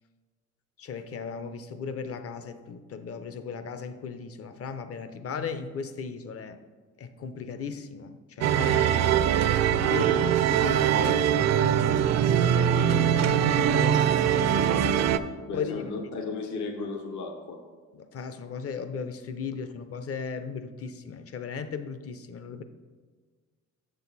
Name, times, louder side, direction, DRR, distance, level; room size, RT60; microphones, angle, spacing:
voice 1, 0.8-6.6 7.0-9.2 9.6-14.9 15.5-15.9 17.9-22.6, left 6 dB, 50° left, 10 dB, 0.6 m, -37 dB
sound 1, 8.4-15.2, right 9 dB, 60° right, 0.4 m, -22 dB
voice 2, 15.5-17.6, left 4 dB, 75° left, 4 dB, 0.9 m, -35 dB
6.8 x 6.5 x 4.0 m, 1.5 s
cardioid pair, 90°, 30 cm